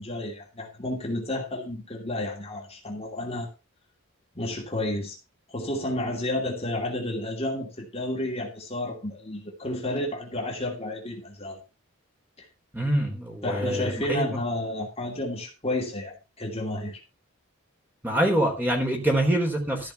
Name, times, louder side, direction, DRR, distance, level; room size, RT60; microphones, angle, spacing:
voice 1, 0.0-3.5 4.3-5.2 5.5-11.6 13.4-17.0, left 1 dB, 30° left, 2.6 m, -31 dB
voice 2, 12.7-14.2 18.0-19.9, right 1 dB, 10° right, 3.7 m, -25 dB
14.5 x 5.5 x 5.7 m
head